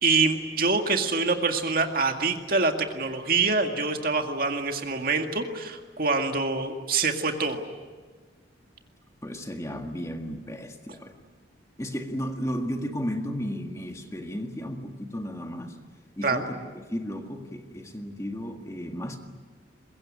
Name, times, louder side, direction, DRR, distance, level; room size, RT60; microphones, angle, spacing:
voice 1, 0.0-7.7 16.2-16.4, right 4 dB, 50° right, 4 dB, 2.1 m, -25 dB
voice 2, 9.2-11.2 11.8-15.8 16.2-19.2, equal, 15° left, 4 dB, 1.8 m, -34 dB
23.0 x 22.0 x 9.8 m, 1.4 s
head